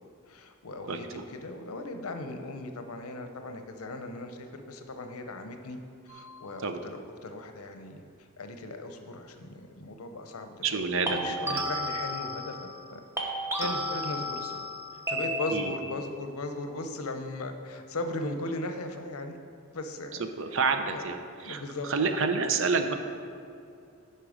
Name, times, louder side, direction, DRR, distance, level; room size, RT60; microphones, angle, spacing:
voice 1, 0.0-5.8 6.0-13.0 13.6-14.7 15.1-19.4 19.7-20.3 20.8-21.1 21.4-22.1, left 2 dB, 85° left, 6 dB, 0.8 m, -38 dB
voice 2, 0.9-1.2 6.6-6.8 10.6-11.2 11.5-11.7 15.5-15.7 20.4-21.2 21.4-21.6 21.9-23.0, right 4 dB, 65° right, 7 dB, 0.6 m, -28 dB
sound 1, 6.1-6.4 11.1-12.9 13.2-16.0, equal, 10° right, 0.9 m, -33 dB
11.0 x 4.5 x 5.1 m, 2.5 s
head